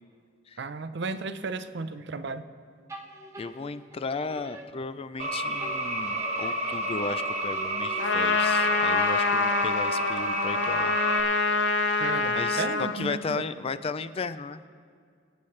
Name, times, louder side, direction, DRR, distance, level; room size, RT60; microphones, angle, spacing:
voice 1, 0.6-2.4 12.0-13.4, right 4 dB, 60° right, 11 dB, 0.6 m, -34 dB
sound 1, 2.9-5.3 5.6-8.4, right 1 dB, 15° right, 1.0 m, -46 dB
voice 2, 3.4-11.0 11.7-12.0 12.3-14.6, left 4 dB, 30° left, 13 dB, 0.4 m, -35 dB
sound 2, 5.2-11.2, right 1 dB, 35° right, 1.2 m, -30 dB
Trumpet, 8.0-13.0, left 3 dB, 65° left, 0.8 m, -26 dB
25.0 x 8.7 x 3.2 m, 2.1 s
head